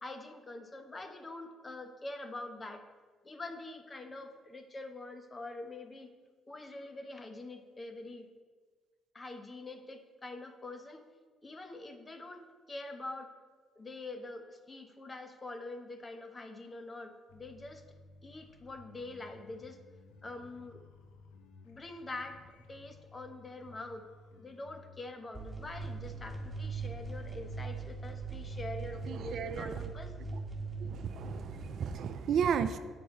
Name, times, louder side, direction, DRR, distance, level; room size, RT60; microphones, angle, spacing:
voice 1, 0.0-2.8 3.2-6.1 6.5-8.3 9.1-11.0 11.4-13.3 13.8-17.8 18.2-19.8 20.2-20.8 21.6-24.1 24.3-30.1, left 2 dB, 30° left, 8 dB, 0.9 m, -45 dB
sound 1, 17.3-25.1, left 3 dB, 85° left, 0.6 m, -57 dB
sound 2, 25.3-31.9, right 4 dB, 15° right, 1.7 m, -41 dB
voice 2, 29.1-29.9 30.8-32.8, right 7 dB, 65° right, 12 dB, 0.3 m, -33 dB
8.7 x 4.6 x 4.1 m, 1.5 s
supercardioid pair, 55°, 0 cm